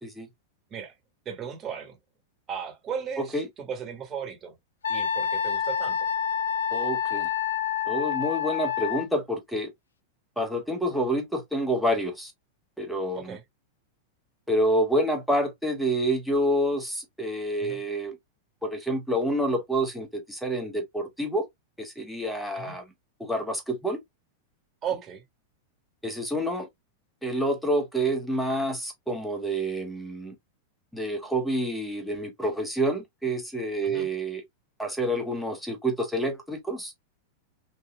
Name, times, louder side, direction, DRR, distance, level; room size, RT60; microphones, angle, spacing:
voice 1, 1.2-2.0 2.5-4.5 4.9-6.1 13.1-13.4 17.6-17.8 22.5-22.8 24.8-25.2 33.8-34.1, right 7 dB, 30° right, 1.5 m, -36 dB
voice 2, 3.2-3.5 6.7-7.3 7.9-9.7 10.4-12.3 12.8-13.4 14.5-18.2 18.6-21.5 21.8-22.8 23.2-24.0 26.0-26.7 27.2-30.3 30.9-34.4 34.8-36.9, right 1 dB, ahead, 1.2 m, -28 dB
Wind instrument woodwind instrument, 4.8-9.1, left 8 dB, 85° left, 0.4 m, -28 dB
3.5 x 2.6 x 2.2 m
hypercardioid pair, 100°, 0 cm